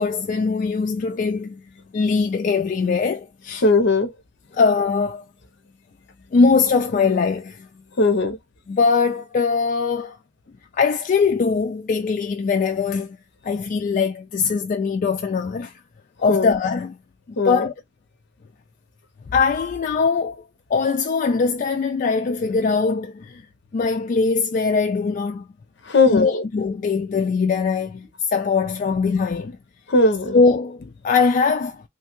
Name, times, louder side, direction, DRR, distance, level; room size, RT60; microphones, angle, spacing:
voice 1, 0.0-1.6 1.9-3.6 4.5-5.2 6.3-7.7 8.7-10.2 10.7-13.2 13.4-15.7 16.2-16.9 17.3-17.7 19.3-20.4 20.7-23.4 23.7-25.4 26.1-29.6 30.3-31.8, left 4 dB, 40° left, 0.3 m, -21 dB
voice 2, 3.6-4.1 8.0-8.4 16.3-16.5 17.4-17.6 25.9-26.4 29.9-30.3, left 3 dB, 60° left, 0.7 m, -18 dB
3.2 x 2.3 x 2.9 m
head